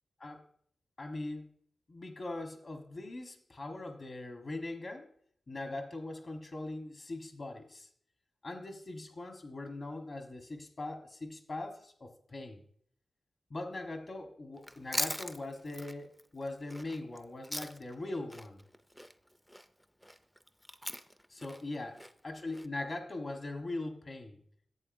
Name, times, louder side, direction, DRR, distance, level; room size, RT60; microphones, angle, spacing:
voice 1, 1.0-1.5 1.9-5.1 5.5-7.9 8.4-12.6 13.5-18.6 21.3-21.9 22.2-24.4, left 2 dB, 40° left, 4 dB, 1.2 m, -41 dB
Chewing mastication, 14.6-18.0 18.3-22.7, equal, 5° left, 0.4 m, -41 dB
11.0 x 8.1 x 2.6 m, 0.63 s
wide cardioid pair, 125°, 0 cm